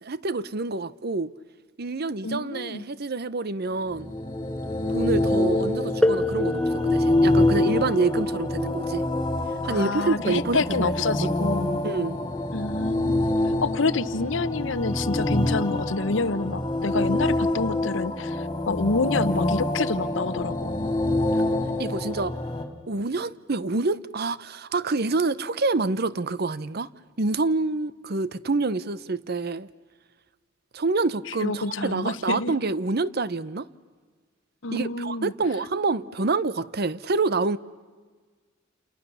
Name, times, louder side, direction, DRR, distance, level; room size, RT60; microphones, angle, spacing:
voice 1, 0.0-1.3 1.8-4.1 4.9-9.0 9.6-10.9 11.2-11.3 11.8-12.2 21.3-21.4 21.8-22.4 22.9-26.9 27.2-29.7 30.7-33.7 34.7-37.6, right 3 dB, 55° right, 0.8 m, -27 dB
voice 2, 2.2-2.8 9.7-11.8 12.5-13.2 13.6-20.9 31.4-32.5 34.6-35.3, left 3 dB, 75° left, 0.9 m, -28 dB
sound 1, 3.8-22.6, left 1 dB, 20° left, 2.8 m, -26 dB
sound 2, 6.0-11.5 12.5-12.6 13.4-13.6, left 1 dB, 5° left, 0.8 m, -31 dB
29.0 x 28.5 x 7.0 m
head